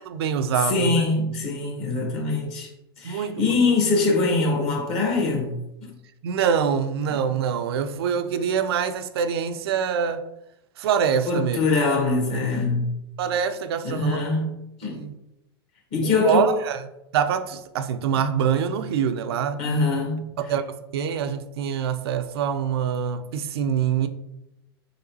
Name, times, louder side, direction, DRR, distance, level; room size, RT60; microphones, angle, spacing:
voice 1, 0.0-1.1 3.0-3.6 6.2-10.2 10.8-11.6 13.2-14.2 14.8-15.1 16.0-16.8 17.1-19.6 20.4-20.6 20.9-24.1, right 7 dB, 70° right, 0.4 m, -25 dB
voice 2, 0.6-2.7 3.0-5.6 11.3-12.9 13.8-14.5 14.8-15.0 15.9-16.5 19.6-20.2, left 3 dB, 45° left, 1.3 m, -23 dB
3.9 x 3.6 x 2.8 m
hypercardioid pair, 105°, 13 cm